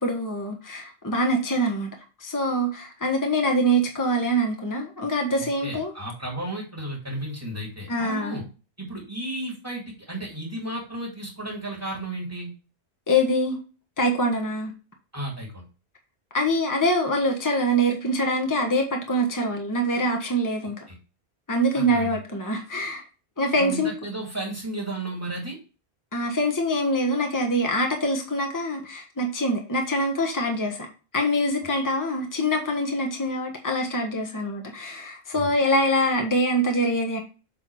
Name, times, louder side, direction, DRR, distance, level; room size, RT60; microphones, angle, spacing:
voice 1, 0.0-1.9 2.2-5.9 7.9-8.4 13.1-13.6 14.0-14.7 16.3-20.8 21.5-23.0 23.4-23.9 26.1-30.9 31.1-37.2, equal, 20° left, 2 dB, 1.2 m, -24 dB
voice 2, 5.4-8.4 8.8-12.5 15.1-15.6 21.7-22.2 23.5-25.6 31.7-31.8 35.3-35.5, right 1 dB, 20° right, -2 dB, 2.4 m, -33 dB
7.9 x 3.4 x 4.7 m, 0.33 s
omnidirectional pair, 1.1 m